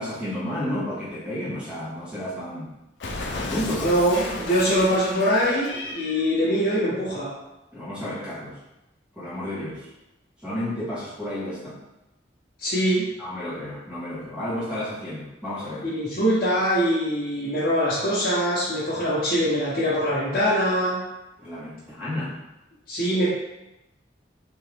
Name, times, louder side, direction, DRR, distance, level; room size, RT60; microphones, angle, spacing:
voice 1, 0.0-2.7 3.3-3.9 4.4-4.6 7.7-8.6 9.1-9.9 10.4-11.8 13.2-15.9 21.4-22.4, left 1 dB, 5° right, -11 dB, 1.4 m, -32 dB
Cat, 3.0-6.3, left 3 dB, 75° left, 0.5 m, -34 dB
voice 2, 3.8-7.3 12.6-13.0 15.8-21.0 22.9-23.3, equal, 55° left, -11 dB, 1.0 m, -23 dB
3.5 x 2.9 x 3.4 m, 0.95 s
head